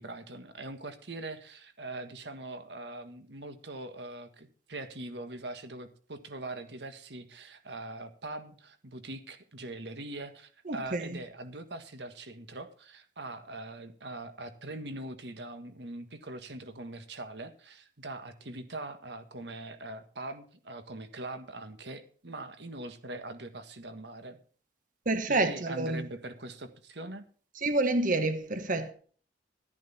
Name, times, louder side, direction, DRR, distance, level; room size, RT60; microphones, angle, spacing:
voice 1, 0.0-24.4 25.3-27.3, right 2 dB, 70° right, 1.6 m, -42 dB
voice 2, 10.7-11.2 25.0-26.0 27.6-28.9, right 2 dB, 50° right, 1.2 m, -28 dB
12.5 x 10.5 x 4.3 m
head